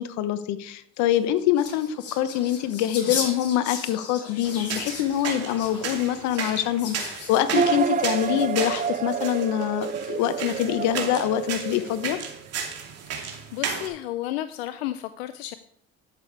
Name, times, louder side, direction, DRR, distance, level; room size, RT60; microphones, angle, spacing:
voice 1, 0.0-12.2, left 11 dB, 65° left, 13 dB, 1.0 m, -25 dB
sound 1, 1.0-9.4 10.0-10.6, left 5 dB, 50° left, 2.9 m, -37 dB
sound 2, 4.4-13.9, right 6 dB, 50° right, 2.6 m, -34 dB
sound 3, 7.5-12.3, right 7 dB, 25° right, 0.5 m, -28 dB
voice 2, 13.5-15.5, left 14 dB, 85° left, 12 dB, 0.6 m, -32 dB
11.5 x 6.9 x 4.7 m, 0.70 s
supercardioid pair, 85°, 31 cm